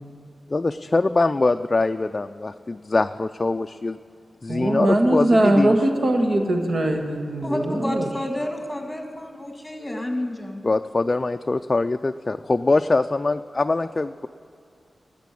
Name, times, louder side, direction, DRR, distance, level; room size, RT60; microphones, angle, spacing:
voice 1, 0.5-4.0 4.4-5.7 10.6-14.3, left 3 dB, 35° left, 8 dB, 0.3 m, -23 dB
voice 2, 4.5-8.1, right 1 dB, 65° right, 3 dB, 1.6 m, -21 dB
voice 3, 7.4-10.6, left 1 dB, 10° left, 3 dB, 1.9 m, -30 dB
12.5 x 8.3 x 8.5 m, 2.3 s
wide cardioid pair, 80°, 0 cm